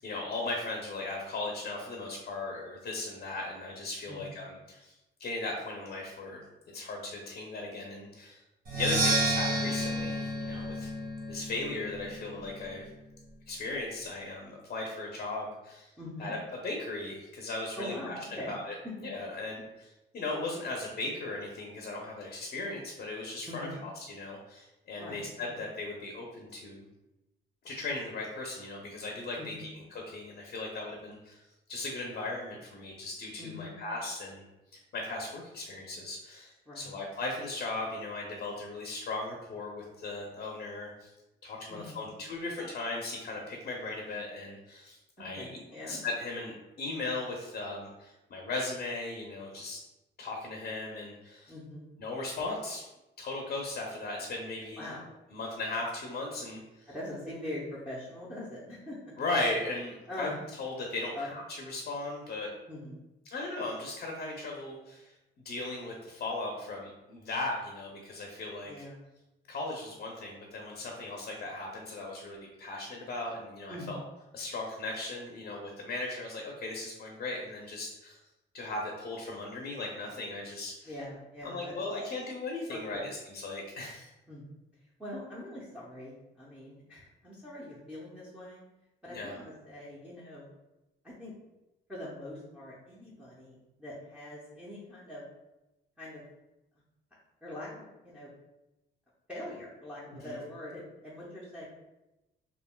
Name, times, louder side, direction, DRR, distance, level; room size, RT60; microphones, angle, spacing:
voice 1, 0.0-4.9 5.2-6.4 6.7-8.4 8.7-10.9 11.3-12.9 13.5-15.9 16.2-16.4 16.6-18.7 19.0-26.8 27.6-31.4 31.7-34.4 34.9-41.1 41.4-45.5 45.9-49.8 50.2-51.5 52.0-52.8 53.2-54.9 55.3-56.9 59.2-60.3 60.6-62.5 63.3-65.1 65.4-68.7 69.5-74.0 74.3-78.2 78.5-80.9 81.4-83.0 83.4-84.1 89.1-89.3 100.2-100.4, left 2 dB, 50° left, 0 dB, 0.6 m, -37 dB
voice 2, 4.1-4.4 16.0-16.3 17.7-18.5 23.5-23.8 25.0-25.6 29.4-29.7 33.4-33.7 36.7-36.9 41.7-42.1 45.2-46.0 51.5-51.9 54.8-55.0 56.9-59.0 60.1-60.5 61.2-61.3 62.7-63.0 68.6-69.0 73.7-74.0 80.8-81.7 82.7-83.0 84.3-84.4 85.0-88.6 89.0-90.5 91.0-91.3 91.9-95.2 96.0-96.2 97.4-98.3 99.3-101.7, left 1 dB, 5° right, -8 dB, 0.7 m, -43 dB
Percussion, 8.6-12.4, right 1 dB, 50° right, 0.9 m, -31 dB
3.3 x 2.4 x 2.2 m, 0.98 s
cardioid pair, 90°, 20 cm